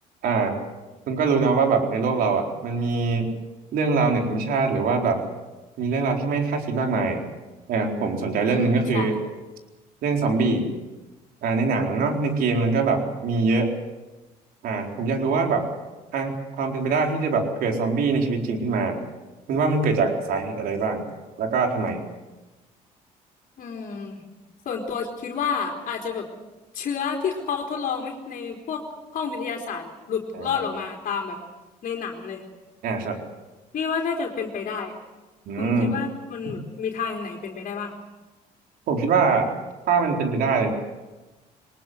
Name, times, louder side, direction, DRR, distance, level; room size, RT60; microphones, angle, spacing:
voice 1, 0.2-0.6 1.1-3.3 3.7-5.2 5.8-7.2 7.7-9.2 10.0-10.7 11.4-13.7 14.6-15.7 16.1-19.0 19.5-21.0 21.4-22.0 30.3-30.5 32.8-33.2 35.5-36.0 36.5-36.6 38.9-39.5 39.9-40.7, right 4 dB, 70° right, 3 dB, 4.3 m, -23 dB
voice 2, 8.5-9.2 23.6-24.2 24.7-26.3 26.7-28.8 29.1-31.4 31.8-32.4 33.7-34.9 35.6-37.9, left 6 dB, 60° left, 1 dB, 3.9 m, -30 dB
22.5 x 20.5 x 8.0 m, 1.1 s
cardioid pair, 90°, 16 cm